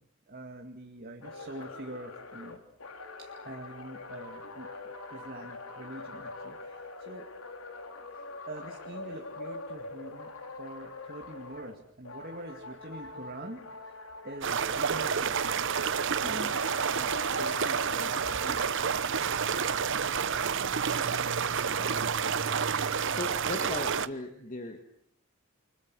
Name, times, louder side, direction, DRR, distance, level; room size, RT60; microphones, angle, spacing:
voice 1, 0.3-2.6 3.2-4.7 5.1-7.3 8.1-10.3 10.6-14.0 14.2-15.4 16.2-19.2 23.7-23.9, right 1 dB, 45° right, 2 dB, 2.4 m, -45 dB
sound 1, 1.2-11.8 12.1-16.1 16.5-18.7, left 3 dB, 75° left, 3.5 m, -44 dB
sound 2, 14.4-24.1, right 6 dB, 60° right, 1.0 m, -29 dB
voice 2, 16.2-16.5 21.7-22.4 22.8-25.0, left 2 dB, 35° left, 5 dB, 2.1 m, -40 dB
29.5 x 25.0 x 6.3 m, 0.66 s
head